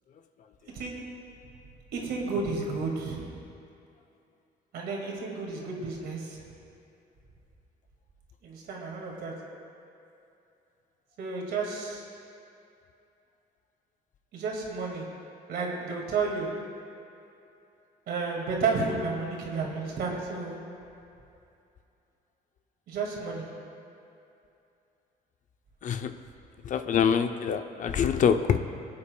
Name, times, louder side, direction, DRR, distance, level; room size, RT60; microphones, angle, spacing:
voice 1, 0.7-1.0 1.9-3.3 4.7-6.5 8.4-9.3 11.2-12.0 14.3-15.1 15.5-16.5 18.1-20.6 22.9-23.5, right 4 dB, 70° right, -1 dB, 2.1 m, -32 dB
voice 2, 25.8-26.1 26.6-28.6, left 7 dB, 50° left, 8 dB, 0.5 m, -25 dB
24.0 x 8.5 x 2.3 m, 2.7 s
cardioid pair, 130°, 17 cm